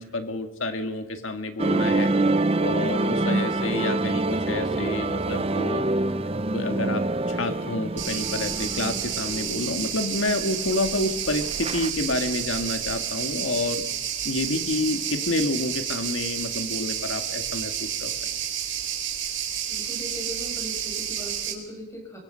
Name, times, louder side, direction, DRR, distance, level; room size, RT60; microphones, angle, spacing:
voice 1, 0.0-2.1 2.6-5.8 6.5-13.8 14.2-18.1, left 2 dB, 80° left, 6 dB, 1.9 m, -29 dB
sound 1, 1.6-11.9, right 2 dB, 30° right, 0.8 m, -26 dB
sound 2, 8.0-21.5, right 9 dB, 70° right, 4.2 m, -30 dB
voice 2, 19.7-22.2, equal, 15° left, 1 dB, 6.5 m, -39 dB
25.5 x 23.5 x 5.7 m, 1.0 s
head